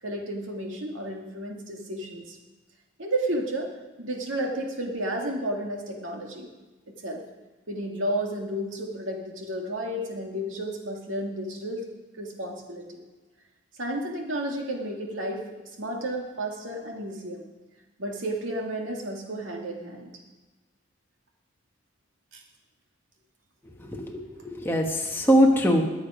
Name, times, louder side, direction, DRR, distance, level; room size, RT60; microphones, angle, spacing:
voice 1, 0.0-2.4 3.0-3.7 4.0-6.5 6.9-7.2 7.7-11.8 12.2-13.0 13.8-15.5 15.8-17.4 18.0-20.1 22.3-22.4, right 1 dB, 85° right, 1 dB, 2.4 m, -32 dB
voice 2, 23.9-25.8, equal, 10° left, 1 dB, 1.4 m, -22 dB
20.5 x 7.2 x 5.1 m, 1.2 s
head